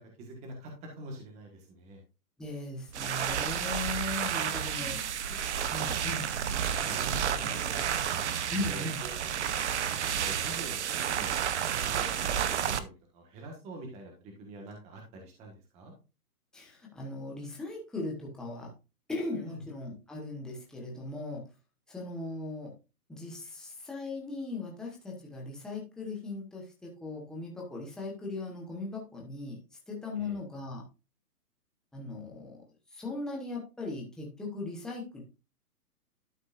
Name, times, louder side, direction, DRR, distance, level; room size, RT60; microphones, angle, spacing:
voice 1, 0.0-2.0 4.7-5.4 6.0-6.1 6.7-8.2 8.6-9.5 9.9-11.3 11.7-15.9 19.5-19.6 30.2-30.4, right 1 dB, 15° right, 1 dB, 1.3 m, -46 dB
voice 2, 2.4-5.2 5.7-6.2 8.5-9.0 16.5-18.7 19.1-21.5 21.9-22.7 23.1-29.6 29.9-30.8 31.9-32.6 32.9-35.2, left 2 dB, ahead, -2 dB, 0.9 m, -38 dB
sound 1, 2.9-12.8, right 9 dB, 45° right, 0.7 m, -31 dB
12.0 x 5.3 x 2.4 m, 0.30 s
hypercardioid pair, 155°, 46 cm